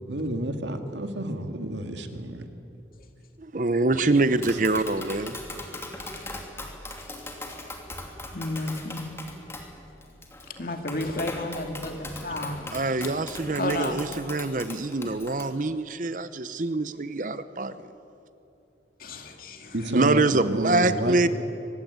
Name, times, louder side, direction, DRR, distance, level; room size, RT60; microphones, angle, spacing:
voice 1, 0.1-2.5 4.1-4.5 19.7-21.3, right 1 dB, 85° right, 6 dB, 2.1 m, -30 dB
voice 2, 3.5-5.4 12.7-17.7 19.9-21.3, right 2 dB, 45° right, 13 dB, 0.7 m, -25 dB
Tap, 4.2-15.4, left 2 dB, 15° left, 2.6 m, -39 dB
voice 3, 8.3-9.0 10.5-12.8 13.5-14.0 19.0-19.7, left 2 dB, 50° left, 5 dB, 2.4 m, -32 dB
24.0 x 20.0 x 9.4 m, 2.9 s
head